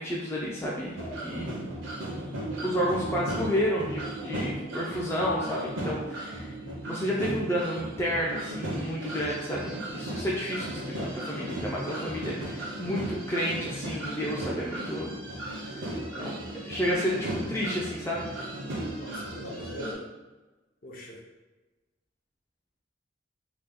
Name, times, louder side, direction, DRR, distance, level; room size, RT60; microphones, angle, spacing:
voice 1, 0.0-1.6 2.6-6.5 6.8-15.1 16.2-16.4 16.6-18.2, equal, 15° left, -5 dB, 0.3 m, -31 dB
sound 1, 1.0-19.9, right 1 dB, 80° right, 0.7 m, -36 dB
voice 2, 19.0-20.0 20.8-21.2, equal, 50° left, -2 dB, 0.6 m, -40 dB
2.9 x 2.2 x 3.5 m, 1.2 s
head